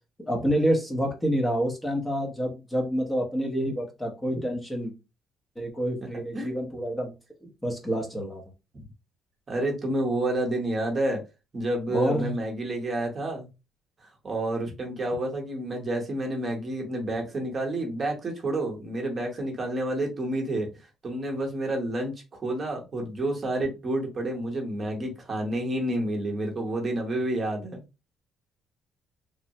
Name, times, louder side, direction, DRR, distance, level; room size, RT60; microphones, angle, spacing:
voice 1, 0.2-4.9 5.6-7.1 7.4-8.4 11.9-12.4, equal, 10° left, 0 dB, 0.7 m, -28 dB
voice 2, 9.5-11.2 11.5-13.5 14.2-20.7 21.0-22.1 22.4-27.8, right 1 dB, 30° right, 1 dB, 0.8 m, -29 dB
3.0 x 2.0 x 2.7 m, 0.27 s
cardioid pair, 130°, 0 cm